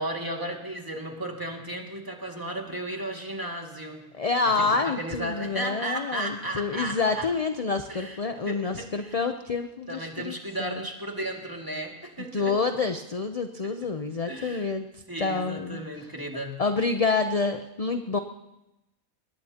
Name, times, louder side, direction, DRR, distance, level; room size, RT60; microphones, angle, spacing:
voice 1, 0.0-4.0 4.5-7.3 7.9-8.2 8.5-9.2 9.9-12.6 13.6-13.7 14.3-14.7 15.1-16.6, right 1 dB, 15° right, 0 dB, 2.2 m, -34 dB
voice 2, 4.2-10.8 12.3-15.8 16.6-18.2, left 4 dB, 40° left, 7 dB, 0.5 m, -28 dB
22.0 x 19.5 x 2.9 m, 0.94 s
omnidirectional pair, 1.5 m